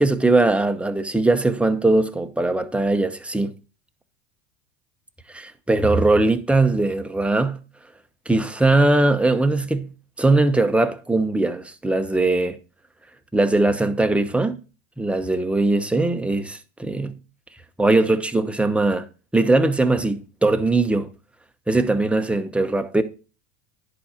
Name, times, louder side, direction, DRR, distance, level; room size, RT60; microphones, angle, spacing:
voice 1, 0.0-3.5 5.3-7.6 8.3-9.9 10.2-12.6 13.3-14.6 15.0-17.2 17.8-19.1 19.3-21.1 21.7-23.0, right 2 dB, 5° right, 0.9 m, -20 dB
10.5 x 4.9 x 4.3 m
supercardioid pair, 105°, 30 cm